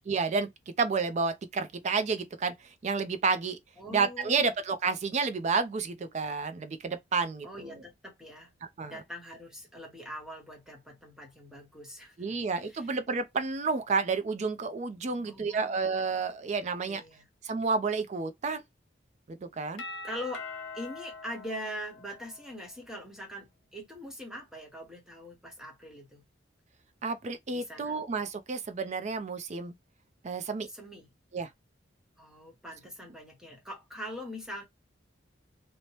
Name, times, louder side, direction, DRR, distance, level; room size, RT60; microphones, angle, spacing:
voice 1, 0.1-0.5 0.8-3.6 3.9-7.8 8.6-9.0 12.2-17.0 17.4-18.6 19.3-19.8 27.0-29.7 30.2-30.7 31.3-31.5, right 4 dB, 35° right, 0.4 m, -30 dB
voice 2, 3.8-4.5 7.4-8.5 8.8-12.4 12.7-12.9 15.1-15.9 16.8-17.3 20.0-20.5 20.7-26.2 27.5-28.0 30.7-31.1 32.2-34.7, equal, 5° right, 0.9 m, -42 dB
Doorbell, 19.8-22.6, left 3 dB, 85° left, 0.9 m, -43 dB
2.8 x 2.0 x 2.9 m
head